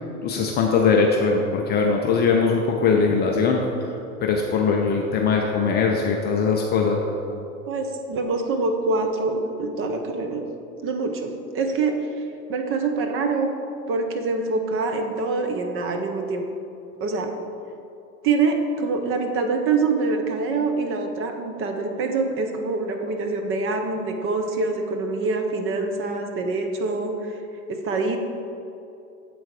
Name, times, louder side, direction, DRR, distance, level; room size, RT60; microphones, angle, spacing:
voice 1, 0.2-4.0 4.2-7.0, left 5 dB, 25° left, 0 dB, 0.4 m, -21 dB
voice 2, 7.7-10.5 10.8-12.0 12.5-13.5 13.9-16.4 17.0-17.3 18.2-27.4 27.7-28.2, right 3 dB, 30° right, 4 dB, 0.6 m, -25 dB
7.6 x 3.9 x 4.8 m, 2.7 s
hypercardioid pair, 95°, 46 cm